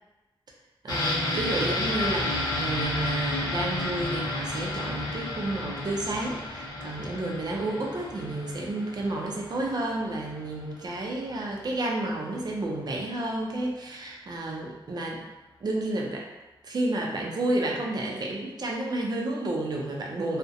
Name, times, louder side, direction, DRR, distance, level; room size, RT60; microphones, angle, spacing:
voice 1, 0.8-15.2 15.6-16.3 16.6-20.4, right 2 dB, 50° right, -1 dB, 0.5 m, -31 dB
sound 1, 0.9-10.5 10.8-10.9, left 2 dB, 50° left, 0.7 m, -32 dB
2.4 x 2.1 x 2.6 m, 1.1 s
wide cardioid pair, 115°, 9 cm